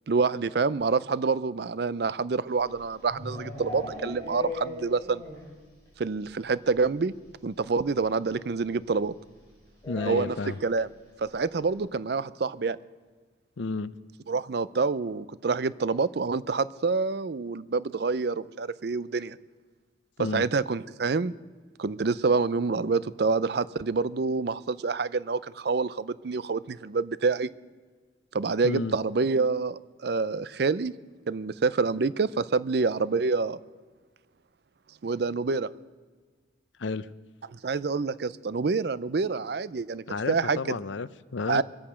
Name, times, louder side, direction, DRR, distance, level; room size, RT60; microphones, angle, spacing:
voice 1, 0.1-5.2 6.0-7.1 7.4-9.1 10.1-10.9 11.2-12.8 14.3-19.4 20.3-21.3 21.8-27.5 28.3-30.9 31.3-33.6 35.0-35.7 37.5-40.8 41.5-41.6, right 4 dB, 55° right, 0.5 m, -27 dB
sound 1, 2.5-5.6 5.9-6.0 6.3-6.4 6.6-6.7 8.0-8.1 9.8-10.6, left 2 dB, 15° left, 4.3 m, -38 dB
voice 2, 9.9-10.6 13.6-14.0 20.2-20.4 28.6-28.9 36.8-37.1 40.1-41.6, left 3 dB, 75° left, 0.6 m, -31 dB
24.0 x 8.7 x 6.2 m
head